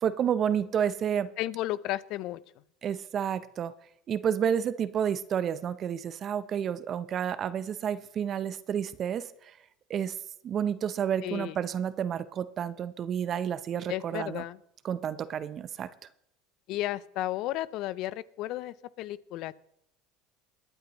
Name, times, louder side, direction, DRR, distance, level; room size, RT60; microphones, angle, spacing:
voice 1, 0.0-1.3 2.8-3.7 4.1-9.5 9.9-10.1 10.4-14.4 14.8-15.9, right 8 dB, 40° right, 14 dB, 0.7 m, -30 dB
voice 2, 1.4-2.4 11.2-11.5 13.9-14.6 16.7-19.6, left 15 dB, 60° left, 19 dB, 0.5 m, -33 dB
22.0 x 9.1 x 3.0 m, 0.75 s
hypercardioid pair, 95°, 0 cm